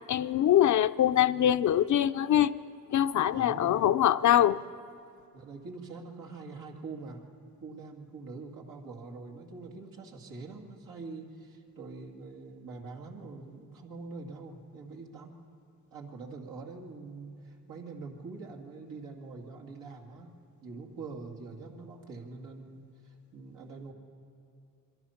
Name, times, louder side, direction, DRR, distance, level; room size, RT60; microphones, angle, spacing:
voice 1, 0.1-2.5 2.9-4.6, left 11 dB, 65° left, 11 dB, 0.6 m, -23 dB
voice 2, 3.3-3.8 5.3-7.2 7.6-15.4 15.9-23.9, right 3 dB, 90° right, 0 dB, 2.5 m, -44 dB
26.0 x 23.0 x 5.8 m, 2.4 s
cardioid pair, 115°, 32 cm